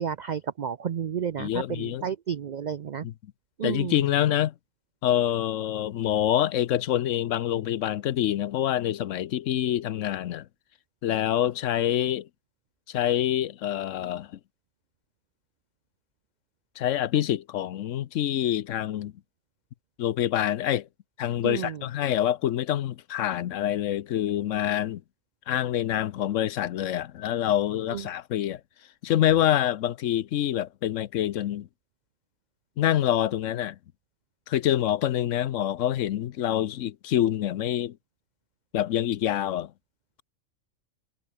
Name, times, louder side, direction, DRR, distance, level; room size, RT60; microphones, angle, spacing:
voice 1, 0.0-3.1 3.6-4.0 21.4-21.8 27.9-28.0, right 8 dB, 80° right, 0.4 m, -31 dB
voice 2, 1.4-2.1 3.0-3.1 3.6-4.5 5.0-10.5 11.0-12.3 12.9-14.3 16.8-19.1 20.0-20.9 21.2-25.0 25.5-28.6 29.0-31.7 32.8-33.8 34.5-38.0 38.7-39.7, left 11 dB, 70° left, 1.0 m, -26 dB
omnidirectional pair, 1.4 m